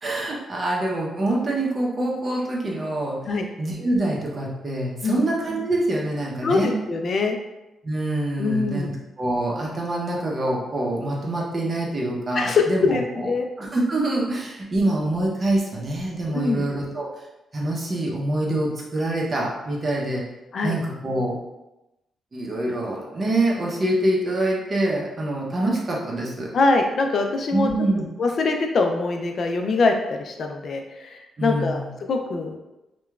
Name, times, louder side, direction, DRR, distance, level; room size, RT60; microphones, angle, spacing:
voice 1, 0.0-3.2 3.6-6.7 7.8-8.9 9.2-13.3 13.6-17.1 17.5-20.2 20.6-21.4 22.3-26.5 27.5-28.1 31.4-31.9, right 1 dB, 40° right, -2 dB, 0.7 m, -25 dB
voice 2, 6.4-7.4 8.4-8.9 12.3-13.5 16.3-16.6 20.5-20.8 26.5-27.7 28.2-32.6, left 3 dB, 60° left, 3 dB, 0.4 m, -23 dB
2.8 x 2.2 x 2.3 m, 0.96 s
cardioid pair, 65°, 0 cm